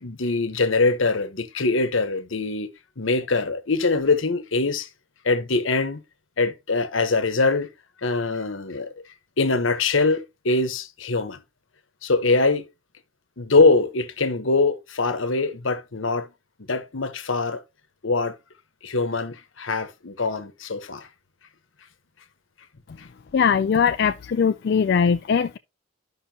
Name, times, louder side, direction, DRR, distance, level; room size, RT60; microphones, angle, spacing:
voice 1, 0.0-2.7 3.0-4.9 5.2-6.0 6.4-7.7 8.0-8.9 9.4-11.4 12.0-12.7 13.4-16.3 16.7-17.6 18.0-18.3 18.8-21.1, left 3 dB, 75° left, 1.1 m, -23 dB
voice 2, 23.3-25.6, left 6 dB, 55° left, 0.3 m, -20 dB
12.0 x 5.6 x 2.8 m
head